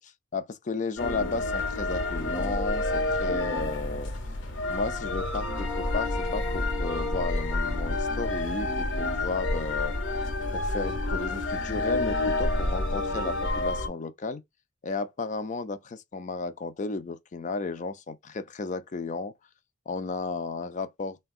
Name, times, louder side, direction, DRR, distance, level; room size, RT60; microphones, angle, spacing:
voice 1, 0.0-4.1 4.7-10.0 10.5-14.4 14.8-19.3 19.9-21.2, left 4 dB, 35° left, 0.4 m, -34 dB
sound 1, 1.0-13.9, left 2 dB, 60° left, 0.8 m, -29 dB
3.6 x 2.2 x 2.3 m
head